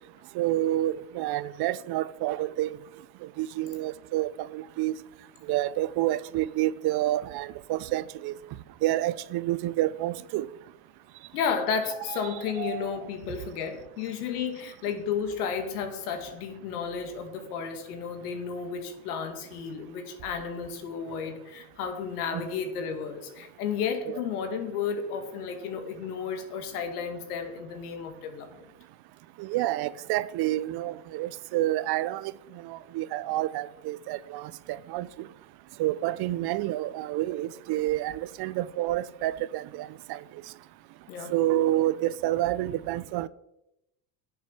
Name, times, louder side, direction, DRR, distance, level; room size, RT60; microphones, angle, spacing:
voice 1, 0.3-2.7 3.4-5.0 5.5-8.3 8.8-10.5 12.1-12.9 22.3-22.6 24.1-24.2 29.4-32.3 32.6-35.1 35.8-40.2 41.3-43.3, right 15 dB, 55° right, 0.8 m, -29 dB
voice 2, 11.3-28.7 41.1-41.3, left 6 dB, 85° left, 2.4 m, -33 dB
9.6 x 8.1 x 7.2 m
hypercardioid pair, 85°, 44 cm